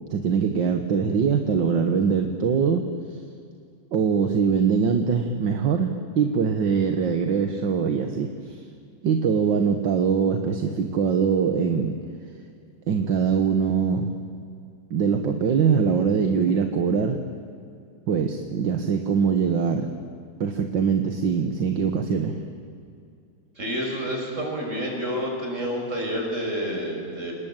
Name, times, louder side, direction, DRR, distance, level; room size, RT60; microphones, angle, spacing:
voice 1, 0.1-2.8 3.9-8.6 9.0-12.0 12.9-14.1 14.9-17.2 18.1-19.9 20.4-22.4, right 6 dB, 70° right, 6 dB, 2.0 m, -22 dB
voice 2, 23.6-27.3, equal, 35° right, 1 dB, 6.0 m, -29 dB
29.5 x 19.5 x 9.1 m, 2.5 s
omnidirectional pair, 2.2 m